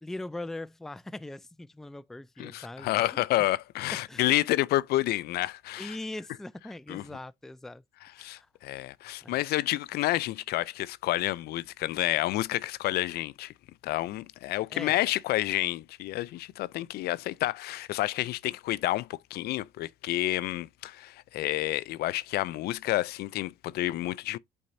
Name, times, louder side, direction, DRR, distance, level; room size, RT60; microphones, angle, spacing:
voice 1, 0.0-3.2 4.1-4.3 5.8-7.8 8.2-8.5 9.2-9.4 14.7-15.0, left 2 dB, ahead, 0.3 m, -41 dB
voice 2, 2.4-6.0 6.9-7.0 8.2-13.5 13.8-24.4, left 16 dB, 70° left, 0.4 m, -29 dB
8.5 x 4.4 x 2.6 m
cardioid pair, 110°, 17 cm